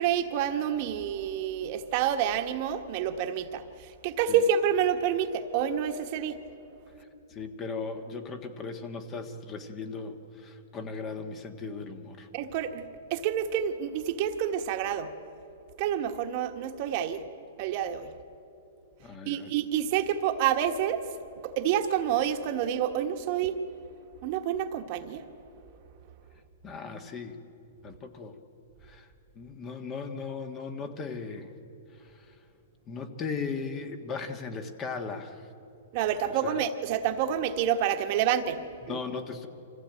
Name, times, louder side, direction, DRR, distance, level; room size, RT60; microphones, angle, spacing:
voice 1, 0.0-6.4 12.3-12.8 13.1-15.1 15.8-17.2 17.6-18.1 19.2-21.0 21.4-23.6 24.2-25.2 35.9-39.0, right 9 dB, 45° right, 6 dB, 1.4 m, -28 dB
voice 2, 7.3-12.3 19.0-19.5 26.6-27.4 27.8-28.4 28.8-29.1 29.3-31.5 32.0-32.3 32.9-35.5 36.4-36.6 38.8-39.5, left 4 dB, 25° left, 6 dB, 1.6 m, -37 dB
25.0 x 15.5 x 9.1 m, 2.7 s
hypercardioid pair, 140°, 0 cm